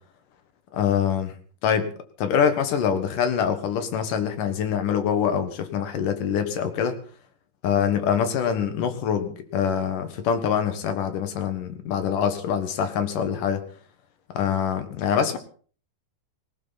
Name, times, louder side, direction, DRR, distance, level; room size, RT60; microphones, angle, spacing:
voice 1, 0.7-1.4 1.6-1.9 2.2-7.0 7.6-13.6 14.3-15.4, left 8 dB, 65° left, 9 dB, 3.0 m, -24 dB
19.0 x 17.5 x 4.1 m, 0.42 s
omnidirectional pair, 4.2 m